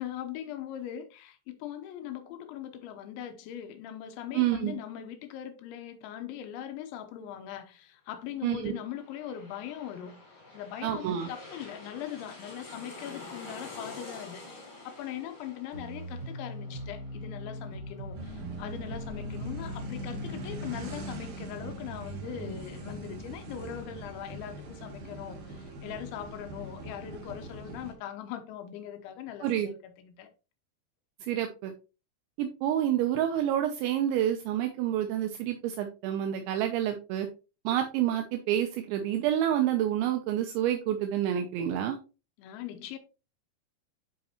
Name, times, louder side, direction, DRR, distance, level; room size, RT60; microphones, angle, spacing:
voice 1, 0.0-10.2 10.5-30.3 42.4-43.0, left 10 dB, 80° left, 3.0 m, -41 dB
voice 2, 4.3-4.7 8.4-8.7 10.8-11.3 29.4-29.7 31.2-31.7 32.4-37.3 37.7-42.0, right 11 dB, 80° right, 2.8 m, -28 dB
sound 1, 8.6-20.0 20.3-20.4, left 3 dB, 30° left, 2.3 m, -48 dB
sound 2, 15.7-21.0, equal, 35° right, 1.7 m, -40 dB
sound 3, 18.1-27.9, right 1 dB, 55° right, 2.4 m, -41 dB
9.6 x 5.2 x 2.9 m
omnidirectional pair, 5.8 m